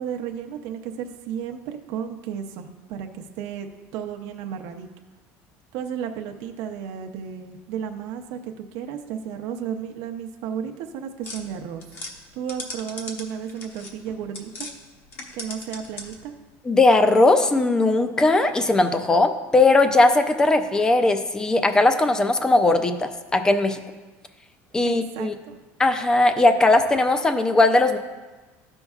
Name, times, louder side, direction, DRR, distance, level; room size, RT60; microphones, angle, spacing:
voice 1, 0.0-4.9 5.7-11.8 12.3-14.7 15.3-16.3 24.8-25.6, right 8 dB, 70° right, 4 dB, 0.6 m, -33 dB
sound 1, 11.2-14.7 15.1-16.3, left 2 dB, 40° left, 1.0 m, -38 dB
voice 2, 16.7-23.8 24.7-25.3 25.8-28.0, left 2 dB, 10° left, 8 dB, 0.4 m, -19 dB
13.5 x 5.3 x 2.4 m, 1.3 s
cardioid pair, 165°, 6 cm